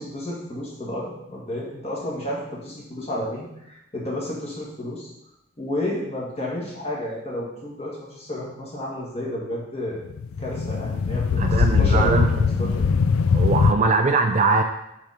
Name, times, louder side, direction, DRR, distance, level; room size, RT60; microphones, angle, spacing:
voice 1, 0.0-5.1 5.6-10.0 10.4-12.7, left 1 dB, 30° left, -4 dB, 2.0 m, -31 dB
sound 1, 10.0-13.7, left 5 dB, 70° left, 0.4 m, -21 dB
voice 2, 11.4-12.5 13.3-14.6, right 3 dB, 35° right, 5 dB, 0.4 m, -21 dB
7.0 x 5.0 x 4.3 m, 0.84 s
head